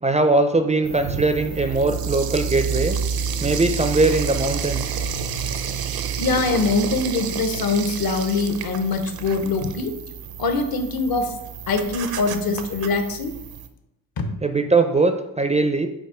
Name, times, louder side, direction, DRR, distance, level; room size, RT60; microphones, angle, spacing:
voice 1, 0.0-3.0 3.4-5.0 14.4-15.9, right 3 dB, 20° right, 7 dB, 0.4 m, -20 dB
sound 1, 0.8-13.7, right 7 dB, 70° right, 0.6 m, -29 dB
voice 2, 6.2-9.9 10.4-11.3 11.7-13.3 14.2-14.3, left 3 dB, 65° left, 7 dB, 0.9 m, -23 dB
5.5 x 3.7 x 4.8 m, 0.93 s
cardioid pair, 100°, 38 cm